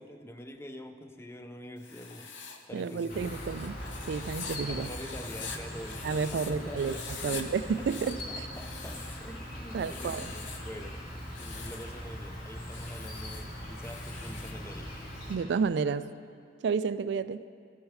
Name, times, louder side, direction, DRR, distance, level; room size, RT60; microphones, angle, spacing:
voice 1, 0.0-2.3 2.7-3.4 4.7-11.0 11.4-14.9, left 1 dB, 15° left, 8 dB, 0.4 m, -45 dB
Writing, 1.8-6.5 6.8-7.4 7.7-9.3 9.7-10.7 11.2-11.9 12.6-14.6, left 6 dB, 85° left, 0.8 m, -44 dB
voice 2, 2.7-3.8 4.1-4.9 6.0-6.9 7.2-8.5 9.7-10.3 15.3-16.1 16.6-17.4, right 5 dB, 70° right, 14 dB, 0.3 m, -31 dB
Insect, 3.1-15.4, equal, 55° left, 2.8 m, -41 dB
15.5 x 6.3 x 4.9 m, 2.3 s
head